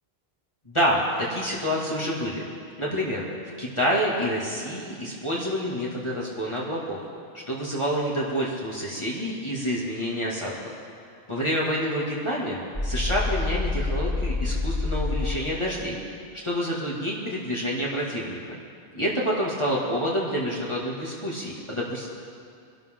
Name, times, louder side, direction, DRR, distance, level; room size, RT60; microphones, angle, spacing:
voice 1, 0.7-2.4 2.8-3.2 3.6-7.0 7.3-10.5 11.3-16.0 16.4-18.4 18.9-22.1, equal, 25° left, -6 dB, 2.5 m, -28 dB
sound 1, 12.7-15.4, left 3 dB, 50° left, 3.1 m, -27 dB
24.5 x 12.0 x 3.8 m, 2.3 s
omnidirectional pair, 1.1 m